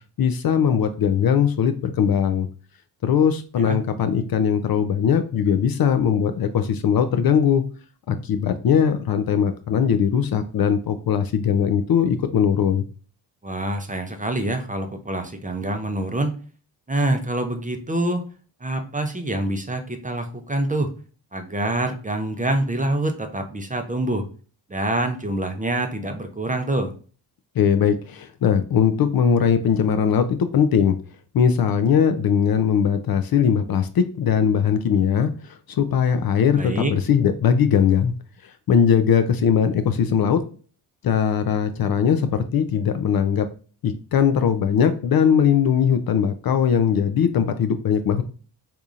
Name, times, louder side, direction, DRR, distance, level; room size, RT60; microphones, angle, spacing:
voice 1, 0.2-2.5 3.0-7.6 8.1-12.8 27.6-31.0 31.3-38.1 38.4-40.4 41.0-43.5 43.8-48.2, left 7 dB, 50° left, 9 dB, 0.5 m, -20 dB
voice 2, 13.4-16.4 16.9-18.2 18.6-20.9 21.3-24.3 24.7-26.9 36.6-36.9, right 1 dB, 15° right, 5 dB, 0.6 m, -26 dB
3.5 x 2.8 x 2.4 m, 0.39 s
supercardioid pair, 55°, 49 cm